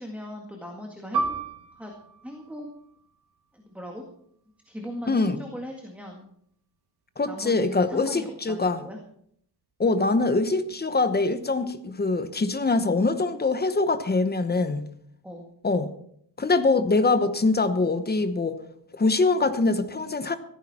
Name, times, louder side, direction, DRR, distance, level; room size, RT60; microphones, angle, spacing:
voice 1, 0.0-1.4 1.8-1.9 2.2-2.7 3.5-4.1 4.7-6.3 7.3-9.0 15.2-15.5, equal, 5° right, 1.9 m, -39 dB
Piano, 1.1-6.2 6.5-6.7 7.5-7.8, right 4 dB, 60° right, 2.2 m, -35 dB
voice 2, 5.1-5.4 7.2-8.8 9.8-14.9 15.6-15.9 16.4-18.6 18.9-20.4, left 3 dB, 20° left, 1.0 m, -23 dB
16.0 x 14.5 x 4.3 m
wide cardioid pair, 165°, 44 cm